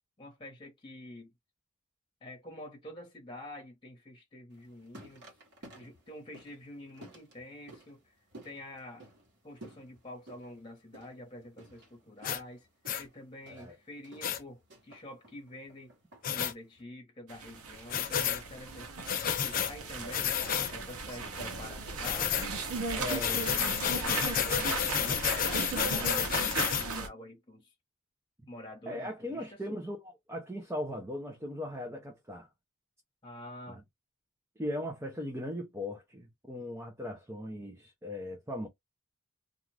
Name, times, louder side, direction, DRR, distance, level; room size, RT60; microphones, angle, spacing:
voice 1, 0.2-1.3 2.2-5.2 5.7-8.1 8.4-9.1 9.4-12.7 13.0-15.9 16.3-20.4 20.7-22.5 22.9-27.7 28.5-29.6 33.2-33.8, left 1 dB, 20° left, 1.1 m, -47 dB
sound 1, 4.5-16.8, right 1 dB, 50° right, 1.2 m, -55 dB
sound 2, 12.2-12.4 12.9-13.0 14.2-14.4 16.2-16.5 17.9-18.4 19.1-19.7 20.1-20.7 22.0-22.5 23.1-26.9, left 9 dB, 40° left, 0.4 m, -30 dB
sound 3, 17.3-27.1, right 3 dB, 80° right, 0.8 m, -37 dB
voice 2, 23.0-23.4 28.9-32.5 33.7-33.8 34.6-38.7, left 1 dB, 10° right, 0.5 m, -38 dB
2.4 x 2.4 x 3.2 m
head